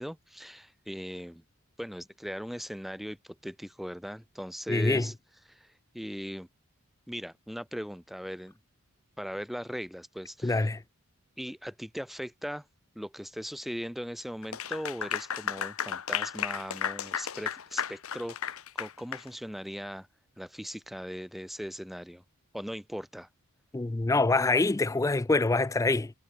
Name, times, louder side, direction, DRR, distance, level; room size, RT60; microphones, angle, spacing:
voice 1, 0.0-1.4 1.8-5.1 5.5-5.7 5.9-6.5 7.1-8.6 9.2-10.6 11.4-12.6 12.9-20.1 20.4-22.2 22.5-23.3, equal, ahead, 4.4 m, -39 dB
voice 2, 4.7-5.1 10.4-10.8 23.7-26.1, left 3 dB, 15° left, 0.4 m, -25 dB
Clapping / Applause, 14.4-19.3, left 8 dB, 70° left, 1.0 m, -34 dB
head